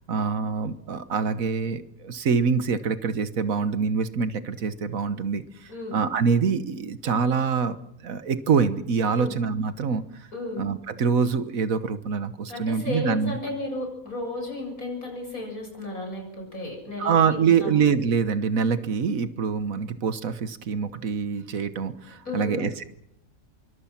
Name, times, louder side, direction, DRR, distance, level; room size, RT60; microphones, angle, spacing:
voice 1, 0.1-7.8 8.0-10.0 10.6-13.4 17.0-22.8, right 6 dB, 75° right, 12 dB, 1.6 m, -25 dB
voice 2, 12.5-17.7 22.2-22.7, left 2 dB, 90° left, 2 dB, 7.9 m, -34 dB
26.0 x 24.0 x 5.9 m, 0.75 s
omnidirectional pair, 1.4 m